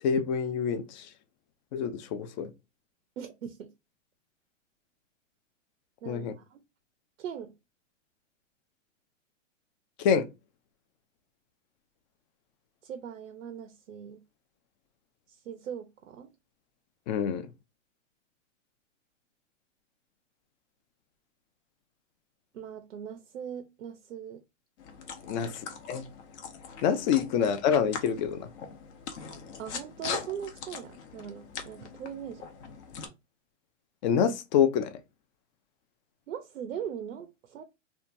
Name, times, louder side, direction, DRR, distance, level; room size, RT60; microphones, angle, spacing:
voice 1, 0.0-1.1 1.7-2.5 6.1-6.3 10.0-10.3 17.1-17.5 25.3-25.5 25.9-26.1 26.8-28.5 34.0-35.0, left 7 dB, 35° left, 0.4 m, -26 dB
voice 2, 3.2-3.7 6.0-6.6 7.2-7.5 12.8-14.2 15.3-16.3 22.5-24.4 25.3-25.5 26.9-27.0 29.6-32.4 36.3-37.6, right 8 dB, 90° right, 0.5 m, -40 dB
sound 1, 24.8-33.1, left 6 dB, 60° left, 0.8 m, -41 dB
2.7 x 2.2 x 2.5 m
hypercardioid pair, 125°, 38 cm